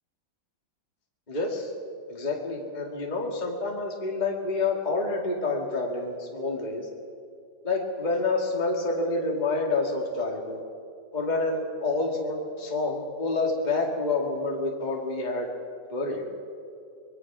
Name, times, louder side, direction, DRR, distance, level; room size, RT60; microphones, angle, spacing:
voice 1, 1.3-1.7 2.1-6.9 7.6-10.6 11.1-15.5 15.9-16.2, left 3 dB, 20° left, 0 dB, 2.2 m, -28 dB
25.0 x 21.0 x 6.1 m, 2.4 s
omnidirectional pair, 2.1 m